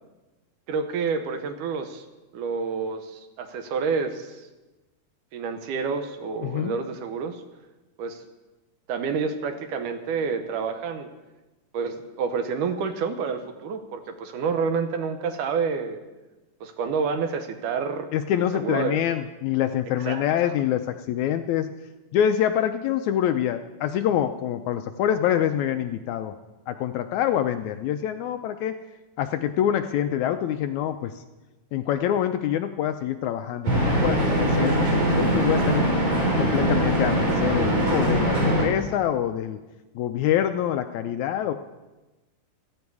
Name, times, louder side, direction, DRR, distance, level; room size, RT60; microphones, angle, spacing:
voice 1, 0.7-2.1 2.3-4.5 5.3-7.4 8.0-8.2 8.9-11.1 11.7-16.0 16.6-18.1 18.4-19.0 20.0-20.2, right 5 dB, 75° right, 7 dB, 2.4 m, -28 dB
voice 2, 6.4-6.7 18.1-21.7 22.1-26.3 26.7-28.8 29.2-31.2 31.7-35.8 36.4-39.6 39.9-41.5, left 10 dB, 80° left, 8 dB, 1.7 m, -25 dB
sound 1, 33.6-38.6, right 1 dB, 50° right, 5.5 m, -22 dB
16.0 x 14.0 x 4.7 m, 1.1 s
omnidirectional pair, 3.8 m